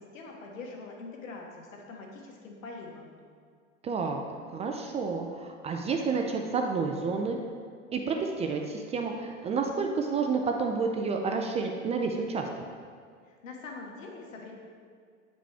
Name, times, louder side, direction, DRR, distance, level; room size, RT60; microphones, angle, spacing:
voice 1, 0.0-3.1 13.3-14.5, left 3 dB, 85° left, 0 dB, 1.5 m, -43 dB
voice 2, 3.8-7.4 7.9-12.6, right 4 dB, 20° right, 3 dB, 0.3 m, -30 dB
8.7 x 5.1 x 3.4 m, 2.1 s
hypercardioid pair, 110°, 38 cm